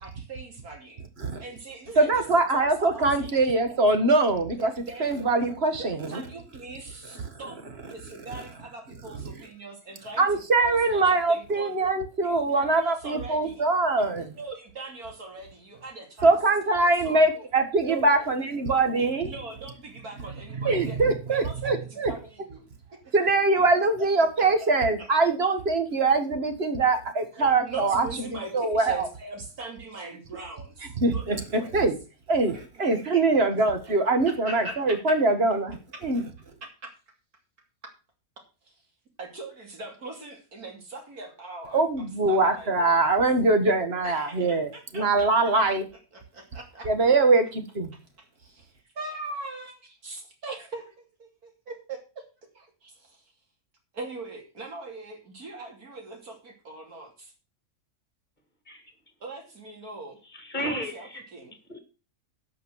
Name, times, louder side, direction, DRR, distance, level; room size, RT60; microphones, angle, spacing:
voice 1, 0.0-1.0 1.4-3.3 4.6-5.1 5.8-10.3 10.6-11.8 12.2-13.6 14.0-16.4 16.8-17.5 17.8-18.3 19.3-22.6 23.0-23.1 24.2-25.1 27.4-31.7 32.3-32.6 32.9-33.2 33.8-35.0 36.8-36.9 38.6-38.7 39.2-43.1 44.0-45.3 45.7-45.8 46.1-46.9 48.9-49.7 50.0-52.2 52.5-53.3 53.9-57.3 59.2-60.2 60.6-61.6, right 3 dB, 85° right, 3.3 m, -41 dB
voice 2, 2.0-4.7 5.0-6.2 10.2-14.4 16.2-19.3 20.6-22.1 23.1-28.1 28.5-29.1 31.0-31.9 32.3-35.8 36.0-36.2 41.7-45.9 46.8-47.9, right 3 dB, 45° right, 1.8 m, -23 dB
voice 3, 60.3-61.2 61.7-61.8, equal, 30° left, 2.3 m, -33 dB
11.5 x 5.8 x 6.3 m
omnidirectional pair, 1.5 m